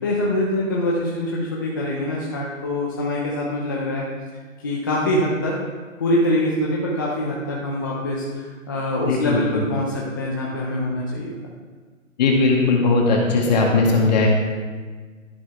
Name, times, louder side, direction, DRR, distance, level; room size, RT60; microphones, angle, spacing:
voice 1, 0.0-4.1 4.6-5.6 6.0-11.3, left 1 dB, 15° left, -4 dB, 0.7 m, -24 dB
voice 2, 9.1-9.6 12.2-14.3, left 3 dB, 30° left, -1 dB, 2.2 m, -18 dB
12.5 x 11.0 x 3.6 m, 1.5 s
hypercardioid pair, 160°, 41 cm